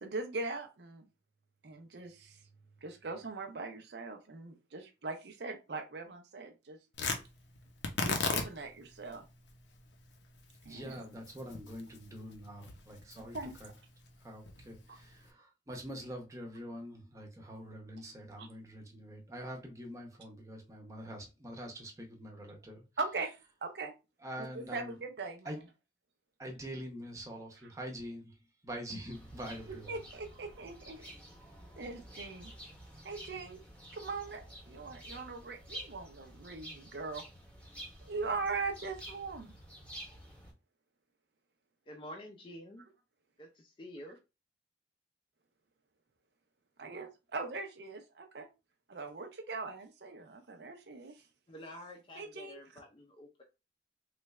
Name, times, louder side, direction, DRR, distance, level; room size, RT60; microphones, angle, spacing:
voice 1, 0.0-1.0 1.6-2.1 2.8-6.8 8.0-9.2 10.7-11.0 13.3-13.5 14.9-15.0 18.4-18.5 23.0-23.3 23.6-23.9 24.4-25.6 29.7-31.0 31.8-32.5 33.0-33.6 33.9-34.4 34.7-37.2 38.1-39.5 46.8-48.5 48.9-51.1 52.2-52.6, right 3 dB, 70° right, 0.6 m, -40 dB
Tearing, 6.9-15.3, left 4 dB, 85° left, 0.7 m, -39 dB
voice 2, 10.7-13.7 14.2-22.8 24.2-25.0 25.4-25.6 26.4-30.0 31.0-31.2, equal, 20° right, 0.8 m, -45 dB
sound 1, 29.1-40.5, right 1 dB, 5° left, 0.9 m, -50 dB
voice 3, 41.9-42.9 43.4-44.2 51.5-53.4, left 1 dB, 30° left, 0.5 m, -49 dB
3.2 x 2.4 x 3.1 m
head